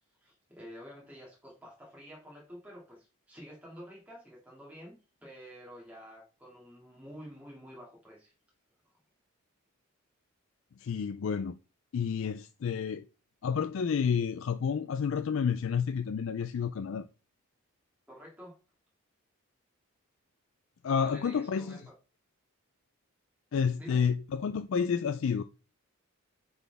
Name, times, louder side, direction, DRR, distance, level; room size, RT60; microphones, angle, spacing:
voice 1, 0.2-8.3 18.1-18.6 21.0-21.9 23.8-24.0, equal, 5° right, 2.3 m, -49 dB
voice 2, 10.8-11.5 11.9-13.1 13.4-17.1 20.8-21.8 23.5-25.4, left 6 dB, 60° left, 0.3 m, -30 dB
9.1 x 4.0 x 3.4 m
head